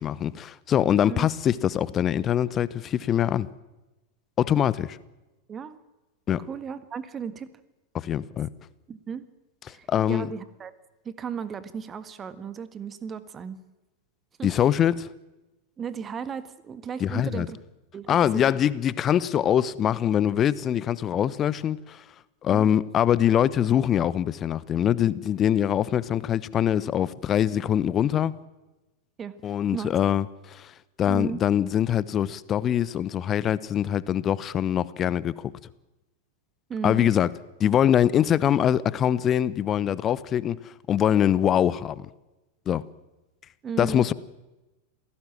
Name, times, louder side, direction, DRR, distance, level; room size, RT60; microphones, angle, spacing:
voice 1, 0.0-3.5 4.4-5.0 6.3-6.4 7.9-8.5 9.9-10.3 14.4-15.1 17.0-17.5 18.1-22.0 22.4-28.3 29.4-30.7 31.0-35.5 36.8-37.3 37.6-40.6 40.9-42.1 42.7-42.8 43.8-44.1, left 10 dB, 30° left, 20 dB, 1.0 m, -23 dB
voice 2, 6.5-7.5 8.9-9.2 9.7-10.7 11.0-13.6 14.4-14.6 15.8-17.6 17.9-18.6 22.5-22.8 29.2-29.9 31.1-31.4 36.7-37.1 43.6-44.0, right 7 dB, 20° right, 13 dB, 1.6 m, -35 dB
28.0 x 18.0 x 7.6 m, 1.1 s
figure-of-eight pair, 90°, 0 cm